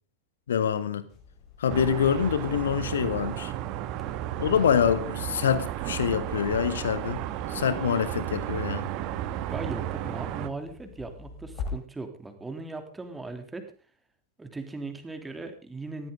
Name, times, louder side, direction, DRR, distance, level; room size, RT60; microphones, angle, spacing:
voice 1, 0.5-1.1 1.6-3.5 4.4-7.2 7.5-8.9, left 8 dB, 65° left, 1.7 m, -25 dB
White Noise, 1.1-11.7, left 2 dB, 40° left, 5.6 m, -44 dB
sound 1, 1.7-10.5, right 13 dB, 40° right, 1.7 m, -33 dB
voice 2, 9.5-13.6 14.4-16.1, right 3 dB, 10° right, 3.3 m, -38 dB
19.5 x 16.5 x 3.9 m
figure-of-eight pair, 90°, 0 cm